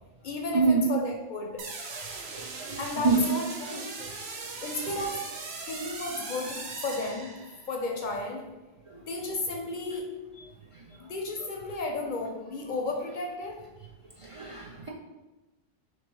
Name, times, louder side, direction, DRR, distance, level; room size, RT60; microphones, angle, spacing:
voice 1, 0.2-1.7 2.8-4.0 4.6-5.3 5.7-8.5 9.1-10.1 11.0-13.6, left 2 dB, 55° left, 2 dB, 0.6 m, -33 dB
sound 1, 1.6-7.7, right 3 dB, 80° right, 0.9 m, -39 dB
voice 2, 2.3-2.8 3.0-3.2 4.0-4.1 4.9-5.0 14.2-14.9, right 5 dB, 50° right, -4 dB, 0.4 m, -26 dB
3.4 x 3.0 x 4.5 m, 1.1 s
omnidirectional pair, 1.1 m